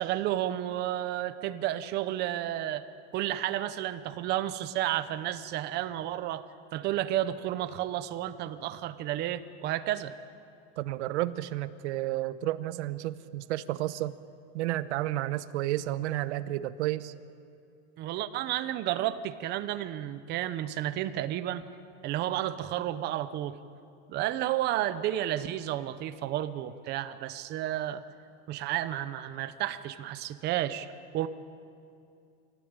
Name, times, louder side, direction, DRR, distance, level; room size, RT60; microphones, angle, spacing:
voice 1, 0.0-2.9 3.1-6.5 6.7-10.1 18.0-21.6 22.0-23.6 24.1-28.0 28.5-31.3, right 13 dB, 30° right, 12 dB, 0.8 m, -31 dB
voice 2, 10.8-14.2 14.5-17.1, right 15 dB, 90° right, 13 dB, 1.1 m, -31 dB
25.5 x 17.5 x 8.9 m, 2.5 s
supercardioid pair, 175°, 33 cm